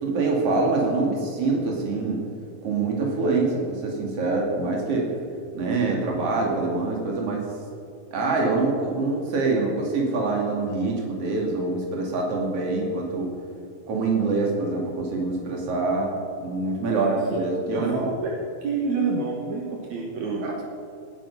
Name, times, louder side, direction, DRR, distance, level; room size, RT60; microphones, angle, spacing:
voice 1, 0.0-2.2 2.6-5.1 5.5-7.5 8.1-13.3 13.9-16.1 16.4-18.1 20.4-20.6, right 3 dB, 55° right, -1 dB, 3.5 m, -25 dB
voice 2, 16.9-17.4 17.7-18.3 18.6-20.4, right 4 dB, 70° right, -2 dB, 2.8 m, -27 dB
19.0 x 10.5 x 5.6 m, 2.4 s
omnidirectional pair, 3.4 m